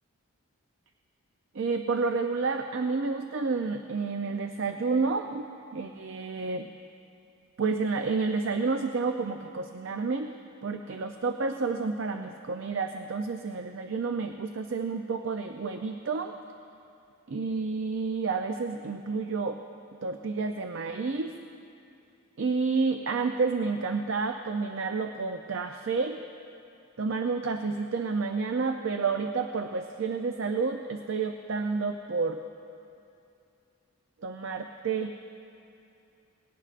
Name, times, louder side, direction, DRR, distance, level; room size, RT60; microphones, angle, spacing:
voice 1, 1.5-5.5 5.7-6.7 7.6-10.3 10.6-16.3 17.3-19.6 20.0-21.3 22.4-26.2 27.0-32.4 34.2-35.1, right 4 dB, 55° right, 6 dB, 0.5 m, -30 dB
19.5 x 17.5 x 2.5 m, 2.6 s
head